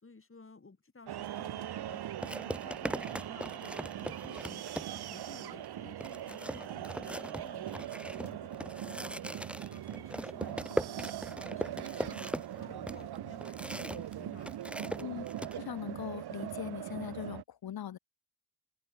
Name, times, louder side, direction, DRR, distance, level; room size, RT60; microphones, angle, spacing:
voice 1, 0.0-2.0 2.4-4.6 4.9-9.4 9.7-12.3 12.6-14.5 14.8-15.1, left 3 dB, 35° left, 3.6 m, -54 dB
sound 1, 1.1-17.4, right 12 dB, 75° right, 1.1 m, -41 dB
sound 2, 1.2-1.4 2.2-5.2 5.6-5.7 6.0-14.1 14.4-15.6, right 1 dB, 5° right, 0.6 m, -39 dB
voice 2, 15.5-18.0, left 10 dB, 65° left, 1.2 m, -40 dB
open air
supercardioid pair, 50°, 39 cm